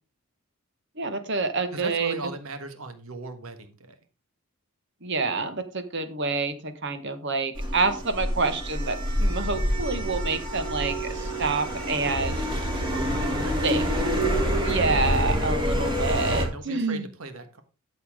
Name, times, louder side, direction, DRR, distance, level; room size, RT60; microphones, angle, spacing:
voice 1, 1.0-2.1 5.0-12.6 13.6-13.9 14.6-17.0, right 3 dB, 55° right, 9 dB, 1.5 m, -28 dB
voice 2, 1.7-4.0 13.1-14.5 16.2-17.6, right 3 dB, 85° right, 8 dB, 1.4 m, -38 dB
sound 1, 7.6-16.5, equal, 25° right, 2.9 m, -27 dB
12.5 x 7.0 x 3.7 m, 0.31 s
head